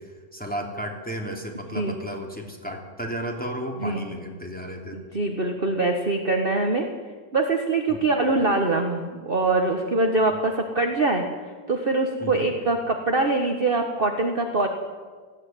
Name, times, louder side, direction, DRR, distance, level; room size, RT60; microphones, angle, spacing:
voice 1, 0.0-5.0 7.9-8.1 10.3-10.4 12.2-12.5, equal, 5° left, 0 dB, 3.1 m, -34 dB
voice 2, 4.9-6.9 7.3-11.2 11.7-14.7, right 2 dB, 30° right, 3 dB, 1.6 m, -23 dB
18.5 x 15.5 x 9.4 m, 1.5 s
omnidirectional pair, 2.0 m